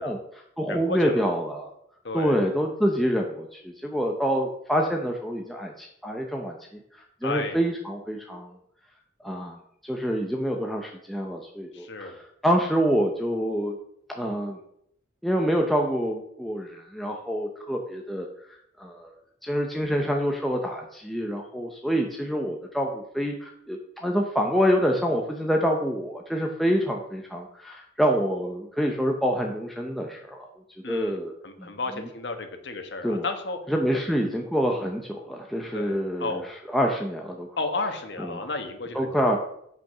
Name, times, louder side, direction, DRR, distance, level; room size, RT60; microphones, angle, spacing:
voice 1, 0.0-1.7 2.1-8.5 9.2-9.6 9.8-13.8 14.1-14.6 15.2-18.3 18.8-19.1 19.4-30.5 30.9-31.7 32.0-32.1 33.0-33.3 33.7-37.5 38.2-38.5 38.9-39.4, equal, ahead, 1 dB, 0.8 m, -27 dB
voice 2, 0.7-1.3 2.0-2.4 7.2-7.6 11.7-12.2 30.8-33.6 35.7-36.4 37.6-39.3, left 3 dB, 70° left, 6 dB, 1.4 m, -33 dB
7.9 x 5.9 x 5.9 m, 0.71 s
head